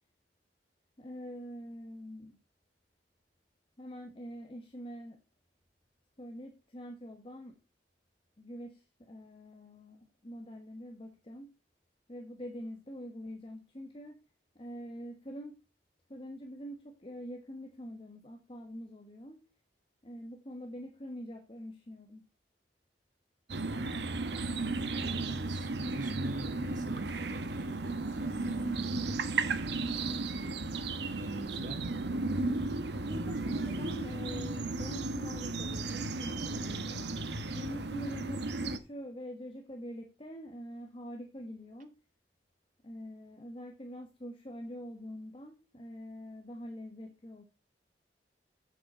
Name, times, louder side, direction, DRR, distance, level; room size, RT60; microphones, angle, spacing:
voice 1, 1.0-2.4 3.8-5.2 6.2-7.6 8.4-11.5 12.1-14.2 14.5-15.5 16.1-19.4 20.0-22.3 33.1-37.1 37.5-41.9 42.8-47.4, equal, 30° left, 1.3 m, -45 dB
sound 1, 23.5-38.8, right 3 dB, 70° right, 1.0 m, -34 dB
voice 2, 24.3-24.7 25.0-32.1, right 2 dB, 50° right, 1.9 m, -45 dB
7.8 x 7.4 x 5.6 m
head